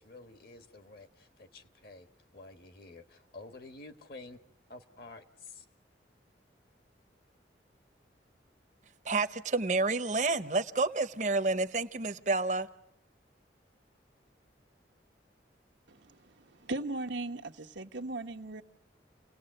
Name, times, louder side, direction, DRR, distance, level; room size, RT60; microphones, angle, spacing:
voice 1, 0.0-2.1 2.3-4.4 4.7-5.6, left 3 dB, 55° left, 1.4 m, -50 dB
voice 2, 9.0-12.7, right 3 dB, 40° right, 0.9 m, -29 dB
voice 3, 15.9-18.6, right 2 dB, 90° right, 1.3 m, -38 dB
29.0 x 18.5 x 7.9 m
head